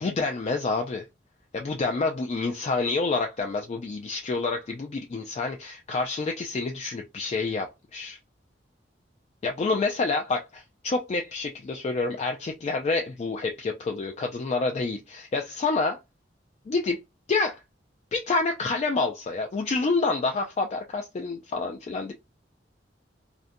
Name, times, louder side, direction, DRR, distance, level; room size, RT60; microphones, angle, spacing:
voice 1, 0.0-1.1 1.5-8.2 9.4-16.0 16.7-17.0 17.3-17.6 18.1-22.1, left 3 dB, 35° left, 0.3 m, -28 dB
2.5 x 2.1 x 2.6 m
head